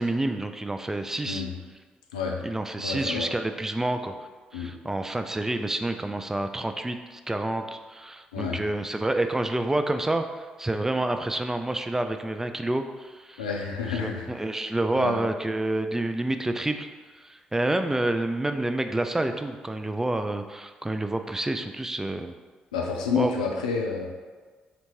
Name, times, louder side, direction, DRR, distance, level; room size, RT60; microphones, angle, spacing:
voice 1, 0.0-1.4 2.4-4.1 4.5-13.5 13.9-16.9 17.1-22.3 23.1-23.3, right 2 dB, 10° right, 7 dB, 0.3 m, -28 dB
voice 2, 2.8-3.3 4.5-4.7 8.3-8.6 13.4-14.3 14.9-15.2 22.7-24.1, left 5 dB, 80° left, 0 dB, 0.4 m, -29 dB
4.1 x 2.7 x 3.0 m, 1.4 s
figure-of-eight pair, 40°, 4 cm